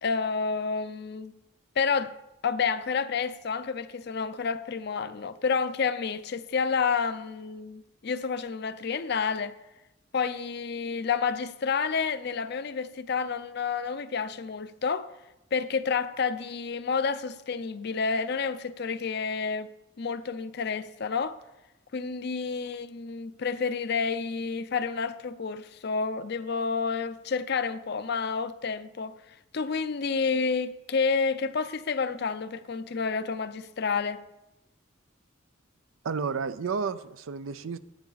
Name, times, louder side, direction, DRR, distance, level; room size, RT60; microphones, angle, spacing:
voice 1, 0.0-1.3 1.8-2.1 2.4-9.5 10.1-15.1 15.5-19.7 20.0-21.4 21.9-29.1 29.5-34.2, left 5 dB, 55° left, 0.5 m, -29 dB
voice 2, 36.0-37.8, right 5 dB, 90° right, 0.5 m, -31 dB
10.0 x 9.1 x 4.0 m
head